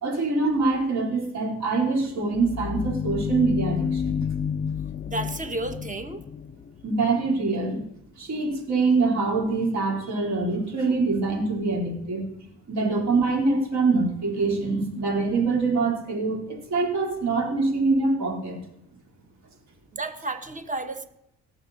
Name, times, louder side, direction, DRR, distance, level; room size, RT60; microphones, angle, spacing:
voice 1, 0.0-4.2 6.8-7.8 8.2-12.3 12.7-18.6, right 3 dB, 65° right, 0 dB, 3.8 m, -24 dB
sound 1, 1.7-7.2, left 7 dB, 35° left, 0.5 m, -30 dB
voice 2, 5.1-6.2 19.9-21.1, right 2 dB, 25° right, 8 dB, 1.3 m, -32 dB
18.0 x 7.0 x 4.1 m, 0.77 s
cardioid pair, 90°, 30 cm